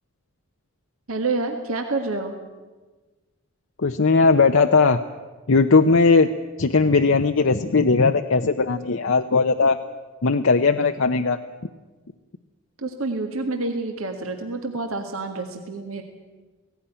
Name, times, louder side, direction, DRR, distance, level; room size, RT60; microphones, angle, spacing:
voice 1, 1.1-2.3 12.8-16.0, right 3 dB, 75° right, 5 dB, 1.8 m, -28 dB
voice 2, 3.8-5.0 5.5-6.3 6.6-9.8 10.2-11.4, left 4 dB, 60° left, 6 dB, 0.7 m, -18 dB
17.5 x 17.0 x 10.0 m, 1.3 s
head